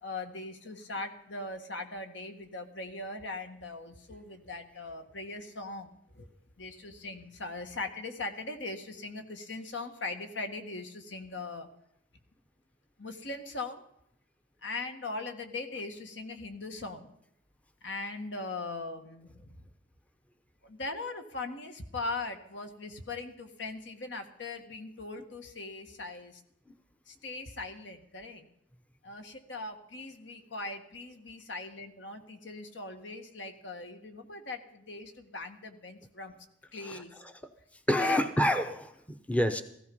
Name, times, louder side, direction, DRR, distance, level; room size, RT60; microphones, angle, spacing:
voice 1, 0.0-6.3 6.6-11.7 13.0-13.8 14.6-17.1 17.8-19.5 20.6-26.4 27.1-28.5 29.0-36.3 36.7-37.1 38.0-38.2, left 3 dB, 70° left, 6 dB, 1.8 m, -40 dB
voice 2, 36.8-37.4 37.9-39.6, left 1 dB, 5° left, 8 dB, 0.8 m, -29 dB
16.5 x 15.0 x 5.4 m, 0.76 s
head